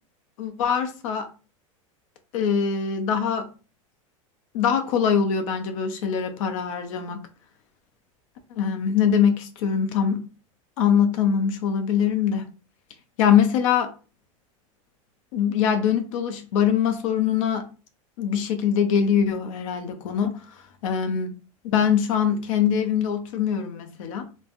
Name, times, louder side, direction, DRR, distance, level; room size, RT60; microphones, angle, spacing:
voice 1, 0.4-1.3 2.3-3.5 4.5-7.2 8.6-10.2 10.8-12.4 13.2-13.9 15.3-17.7 18.2-20.4 20.8-21.3 21.6-24.3, left 8 dB, 70° left, 0.7 m, -23 dB
3.2 x 2.1 x 2.5 m
hypercardioid pair, 105°, 17 cm